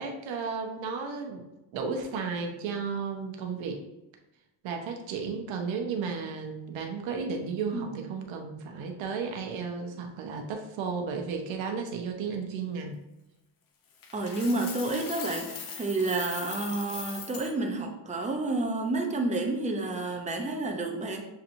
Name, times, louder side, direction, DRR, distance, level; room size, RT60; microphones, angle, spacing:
voice 1, 0.0-1.4 1.7-3.8 4.6-12.9, right 5 dB, 80° right, 3 dB, 0.9 m, -33 dB
Coin (dropping), 14.0-17.5, left 6 dB, 45° left, 0.7 m, -40 dB
voice 2, 14.1-21.2, right 2 dB, 15° right, 2 dB, 0.5 m, -30 dB
6.9 x 2.9 x 2.6 m, 0.96 s
cardioid pair, 155°, 46 cm